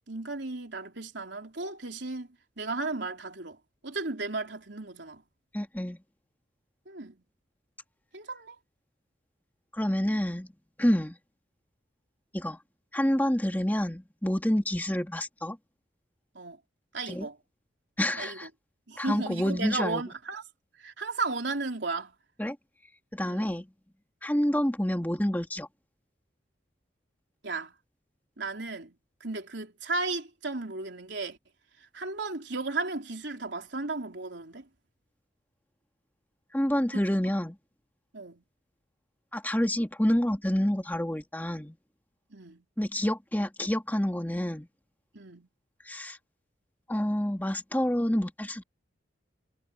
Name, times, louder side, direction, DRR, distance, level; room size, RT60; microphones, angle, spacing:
voice 1, 0.1-2.3 2.6-3.6 3.8-5.2 6.9-7.2 8.1-8.6 16.4-16.6 16.9-17.4 18.1-18.5 18.9-20.4 20.8-22.1 23.2-23.6 27.4-27.7 28.4-31.4 31.9-34.7 36.9-37.0 38.1-38.4 42.3-42.7 45.1-45.5, right 3 dB, 65° right, 3.6 m, -35 dB
voice 2, 5.5-6.0 9.7-10.5 10.8-11.2 12.3-12.6 12.9-15.6 17.1-17.3 18.0-18.5 19.0-20.0 22.4-22.6 23.1-23.7 24.2-25.7 36.5-37.6 39.3-41.8 42.8-44.7 45.9-46.2 46.9-48.6, equal, 10° left, 1.8 m, -28 dB
head